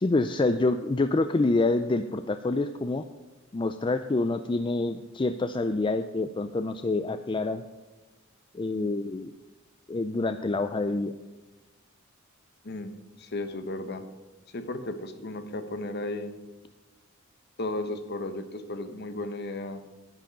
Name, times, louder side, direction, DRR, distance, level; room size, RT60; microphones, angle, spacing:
voice 1, 0.0-3.0 3.5-7.6 8.5-9.3 9.9-11.1, left 2 dB, 25° left, 9 dB, 0.4 m, -27 dB
voice 2, 13.2-14.0 14.5-16.3 17.6-19.8, left 2 dB, 50° left, 9 dB, 1.1 m, -34 dB
10.5 x 10.0 x 5.1 m, 1.2 s
head